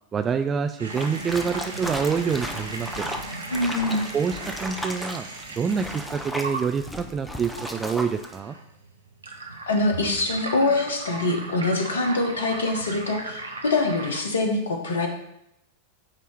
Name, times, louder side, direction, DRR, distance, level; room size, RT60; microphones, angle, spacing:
voice 1, 0.1-3.1 4.1-5.3 5.5-8.6, right 6 dB, 20° right, 8 dB, 0.3 m, -26 dB
sound 1, 0.8-14.2, right 3 dB, 75° right, 0.8 m, -37 dB
sound 2, 0.9-8.4, equal, 5° left, 0.7 m, -35 dB
voice 2, 3.5-4.1 9.7-15.1, left 2 dB, 65° left, 3 dB, 1.2 m, -24 dB
8.8 x 2.9 x 4.6 m, 0.80 s
figure-of-eight pair, 90°, 0 cm